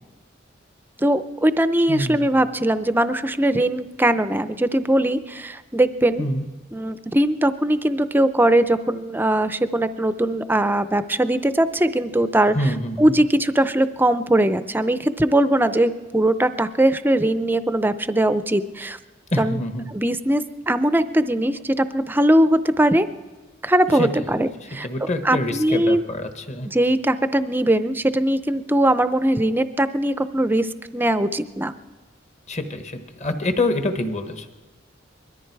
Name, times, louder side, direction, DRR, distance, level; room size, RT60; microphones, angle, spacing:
voice 1, 1.0-6.3 6.7-12.6 13.0-19.0 19.4-19.6 19.9-23.1 23.6-26.0 26.6-30.7 30.9-31.7, right 1 dB, 10° right, 12 dB, 0.5 m, -20 dB
voice 2, 1.9-2.3 6.2-6.4 12.5-13.2 19.3-19.9 23.9-24.4 24.8-26.7 32.5-34.5, left 1 dB, 35° left, 7 dB, 1.2 m, -26 dB
21.5 x 13.5 x 4.7 m, 1.2 s
head